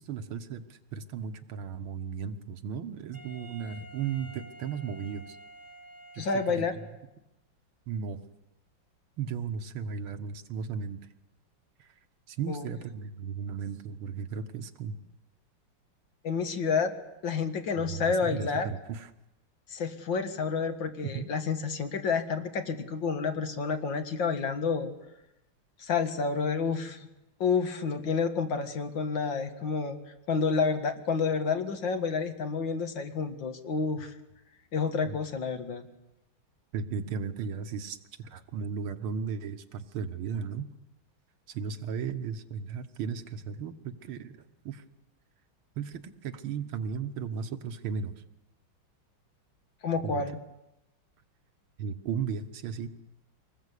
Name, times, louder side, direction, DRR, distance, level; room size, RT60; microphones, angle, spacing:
voice 1, 0.0-5.4 6.1-6.6 7.9-8.2 9.2-11.0 11.8-11.9 12.3-15.0 17.8-19.1 21.1-21.3 35.1-35.2 36.7-40.7 41.5-44.3 44.7-44.8 45.8-48.2 50.0-50.2 51.8-52.9, right 6 dB, 85° right, 8 dB, 2.1 m, -35 dB
Wind instrument woodwind instrument, 3.1-7.1, right 1 dB, 5° right, 4.1 m, -50 dB
voice 2, 6.2-6.7 12.5-12.7 16.2-16.9 17.2-18.7 19.7-24.9 25.8-27.1 27.4-34.1 34.7-35.8 49.8-50.4, left 5 dB, 65° left, 7 dB, 2.4 m, -29 dB
24.5 x 20.0 x 8.3 m, 0.91 s
omnidirectional pair, 2.3 m